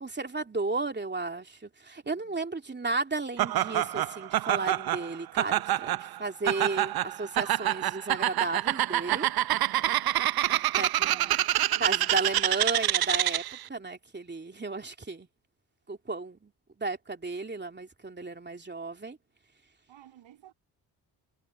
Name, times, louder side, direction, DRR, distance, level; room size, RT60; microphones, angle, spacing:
voice 1, 0.0-9.3 10.7-11.2 11.8-13.4 13.7-15.3 15.9-16.5 16.8-19.2, right 3 dB, 25° right, 2.8 m, -34 dB
Laughter, 3.4-13.6, right 13 dB, 55° right, 0.6 m, -27 dB
voice 2, 9.5-10.1 11.1-11.4 11.7-12.2 18.5-18.6 19.9-20.5, right 12 dB, 80° right, 7.8 m, -52 dB
cardioid pair, 65°, 44 cm